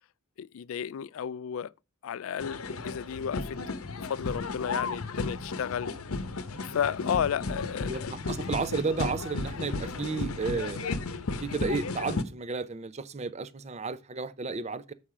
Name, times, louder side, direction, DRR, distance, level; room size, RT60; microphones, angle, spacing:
voice 1, 0.4-1.7 2.0-3.6 3.9-5.9 6.6-8.1, left 8 dB, 70° left, 0.3 m, -33 dB
sound 1, 2.4-12.2, left 3 dB, 90° left, 0.9 m, -34 dB
voice 2, 7.8-10.9 11.4-14.9, right 4 dB, 30° right, 0.5 m, -33 dB
7.5 x 5.6 x 4.8 m
head